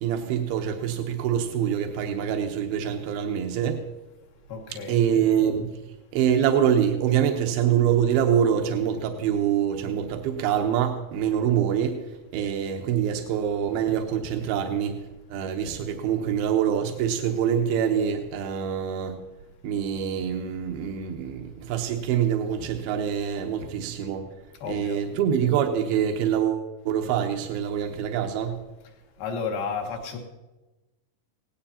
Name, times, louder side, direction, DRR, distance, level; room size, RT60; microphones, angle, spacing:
voice 1, 0.0-3.8 4.7-15.0 15.3-19.2 19.6-24.3 24.7-28.6, right 9 dB, 85° right, 3 dB, 2.9 m, -25 dB
voice 2, 4.5-5.0 24.6-25.0 29.2-30.2, left 5 dB, 75° left, 3 dB, 3.4 m, -32 dB
18.5 x 17.5 x 2.8 m, 1.1 s
omnidirectional pair, 4.3 m